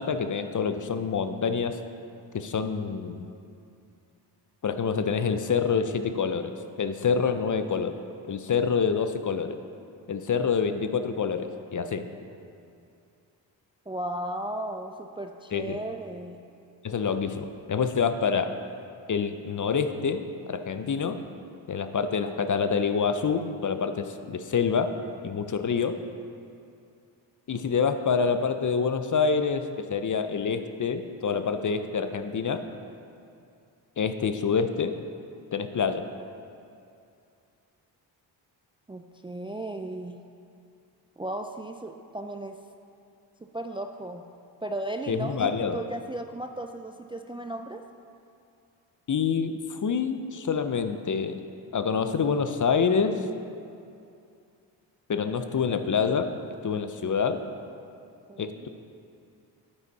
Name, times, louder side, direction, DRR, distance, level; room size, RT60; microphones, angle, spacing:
voice 1, 0.0-1.8 2.3-3.3 4.6-8.0 8.3-9.6 10.1-12.1 15.5-15.8 16.8-18.5 19.1-21.2 21.7-24.9 25.2-26.0 27.5-32.6 34.0-35.0 35.5-36.1 45.1-45.8 49.1-51.4 51.7-53.2 55.1-56.3 56.6-57.4 58.4-58.7, left 6 dB, 40° left, 9 dB, 0.7 m, -27 dB
voice 2, 13.9-16.4 38.9-40.2 41.2-42.6 43.4-44.2 44.6-47.8 58.3-58.7, right 1 dB, 10° right, 6 dB, 0.4 m, -35 dB
9.2 x 8.7 x 4.1 m, 2.5 s
supercardioid pair, 40°, 49 cm